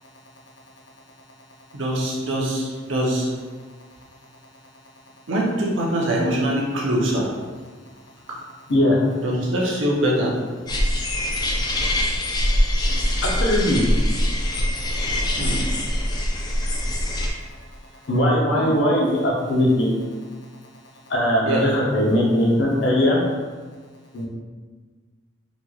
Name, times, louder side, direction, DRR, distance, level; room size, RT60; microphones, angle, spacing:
voice 1, 1.7-3.3 5.3-7.3 8.3-8.4 9.2-10.3 15.4-15.6 18.5-18.7 21.4-21.6, right 1 dB, 90° right, -3 dB, 0.8 m, -23 dB
sound 1, 10.7-17.3, left 1 dB, 20° left, 0.4 m, -23 dB
voice 2, 13.2-13.8 18.1-19.9 21.1-23.2 24.1-24.3, left 1 dB, 75° left, -3 dB, 0.8 m, -20 dB
4.1 x 3.0 x 2.4 m, 1.4 s
head